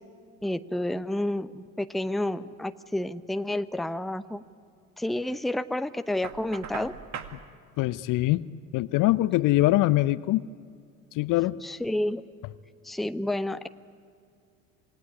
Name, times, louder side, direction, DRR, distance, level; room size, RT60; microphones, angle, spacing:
voice 1, 0.4-4.4 5.0-6.9 11.6-12.2 12.8-13.7, left 1 dB, ahead, 12 dB, 0.8 m, -30 dB
Knock, 6.2-7.4, right 7 dB, 40° right, 2.0 m, -39 dB
voice 2, 7.8-8.4 8.7-10.4 11.1-11.6, left 17 dB, 50° left, 18 dB, 0.7 m, -23 dB
27.5 x 19.0 x 9.7 m, 2.3 s
figure-of-eight pair, 65°, 42 cm